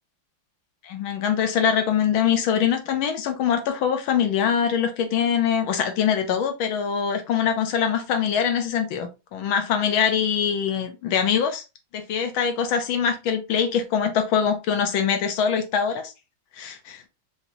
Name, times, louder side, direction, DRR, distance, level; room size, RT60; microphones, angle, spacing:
voice 1, 0.8-11.6 11.9-16.1 16.5-17.1, left 7 dB, 75° left, 1.5 m, -23 dB
4.9 x 2.8 x 2.8 m
omnidirectional pair, 2.3 m